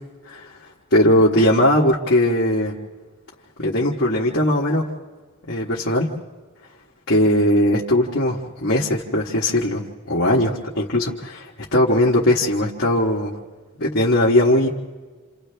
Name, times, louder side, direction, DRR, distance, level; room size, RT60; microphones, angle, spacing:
voice 1, 0.9-2.8 3.6-4.9 5.5-6.1 7.1-13.3 13.8-14.7, left 1 dB, 50° left, -5 dB, 1.4 m, -19 dB
28.5 x 28.0 x 3.4 m, 1.4 s
head